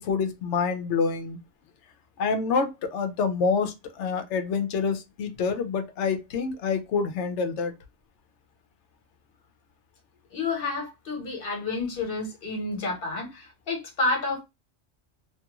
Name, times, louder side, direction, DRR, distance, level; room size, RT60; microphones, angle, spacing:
voice 1, 0.0-1.4 2.2-7.7, left 5 dB, 80° left, 0.9 m, -27 dB
voice 2, 10.3-14.4, left 3 dB, 50° left, 1.2 m, -30 dB
2.9 x 2.3 x 2.9 m
omnidirectional pair, 1.2 m